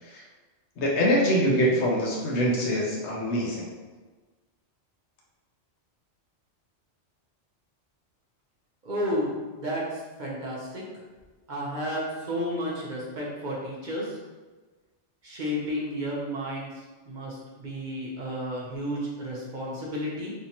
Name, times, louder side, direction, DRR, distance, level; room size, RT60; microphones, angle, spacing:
voice 1, 0.8-3.7, equal, 70° left, -2 dB, 1.0 m, -24 dB
voice 2, 8.8-10.9 11.5-14.2 15.2-20.3, equal, 45° right, -4 dB, 0.7 m, -32 dB
3.5 x 2.8 x 2.8 m, 1.3 s
omnidirectional pair, 1.2 m